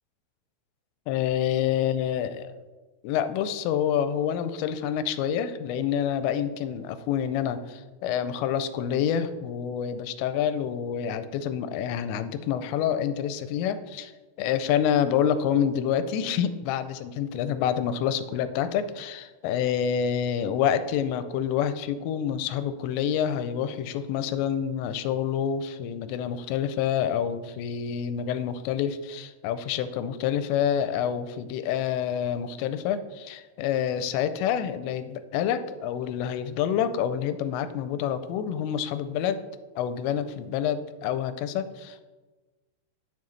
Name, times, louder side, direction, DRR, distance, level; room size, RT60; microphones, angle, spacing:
voice 1, 1.1-2.6 3.0-14.1 14.4-39.4 39.8-42.0, left 9 dB, 85° left, 11 dB, 2.8 m, -27 dB
10.5 x 7.3 x 3.1 m, 1.3 s
omnidirectional pair, 5.0 m